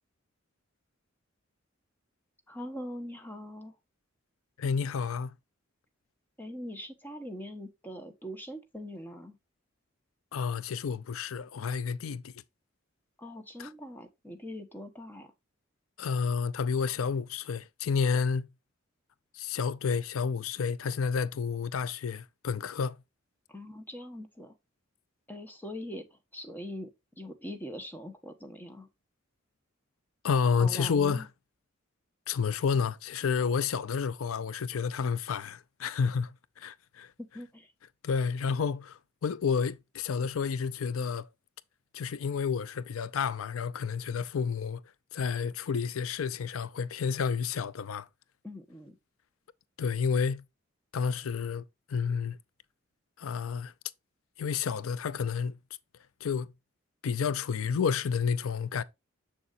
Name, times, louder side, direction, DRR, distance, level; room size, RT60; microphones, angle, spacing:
voice 1, 2.5-3.7 6.4-9.4 13.2-15.3 23.5-24.5 25.3-26.0 26.3-26.9 27.2-28.9 30.6-31.3 37.2-37.7 48.4-49.0, left 1 dB, 10° left, 1.2 m, -42 dB
voice 2, 4.6-5.3 10.3-12.3 13.6-13.7 16.0-18.5 19.3-23.0 30.2-31.3 32.3-37.1 38.0-41.3 41.9-44.8 45.1-48.1 49.8-50.4 50.9-51.6 51.9-52.4 53.2-53.7 54.4-55.5 56.2-56.5 57.0-58.8, left 6 dB, 90° left, 0.5 m, -30 dB
7.1 x 6.9 x 2.5 m
head